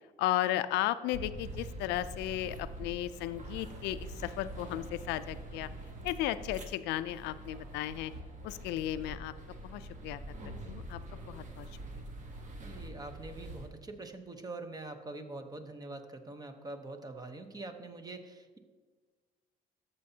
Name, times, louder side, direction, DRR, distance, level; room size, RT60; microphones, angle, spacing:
voice 1, 0.2-5.7 6.0-8.1 8.4-9.3 9.6-10.2 10.7-11.0 11.3-11.7, left 13 dB, 85° left, 13 dB, 0.4 m, -34 dB
sound 1, 1.1-13.7, right 1 dB, 45° right, 1.3 m, -45 dB
voice 2, 12.6-18.6, right 2 dB, 20° right, 7 dB, 0.9 m, -44 dB
13.5 x 6.8 x 2.8 m, 1.4 s
cardioid pair, 110°, 17 cm